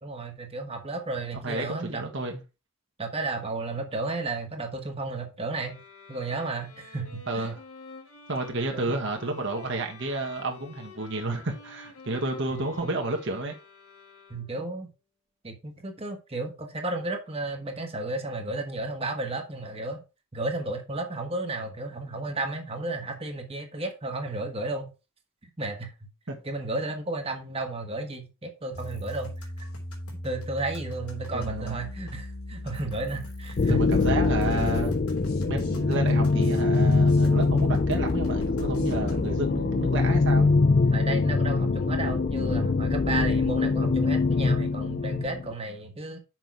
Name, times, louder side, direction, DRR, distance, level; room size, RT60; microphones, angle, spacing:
voice 1, 0.0-2.0 3.0-5.8 6.1-7.5 8.7-8.9 12.5-12.6 14.3-14.9 15.4-20.0 20.3-24.9 25.6-25.9 26.4-29.5 30.2-33.8 40.9-46.2, right 2 dB, 25° right, 1.2 m, -33 dB
voice 2, 1.4-2.4 7.3-7.6 8.3-13.5 26.3-26.4 31.3-31.8 33.7-34.9 35.5-40.5, right 2 dB, 55° right, 1.4 m, -31 dB
sound 1, 5.5-14.7, left 4 dB, 75° left, 2.0 m, -49 dB
sound 2, 28.7-39.4, equal, 90° left, 3.0 m, -37 dB
sound 3, 33.6-45.5, left 3 dB, 40° left, 0.4 m, -23 dB
6.2 x 5.5 x 4.7 m
head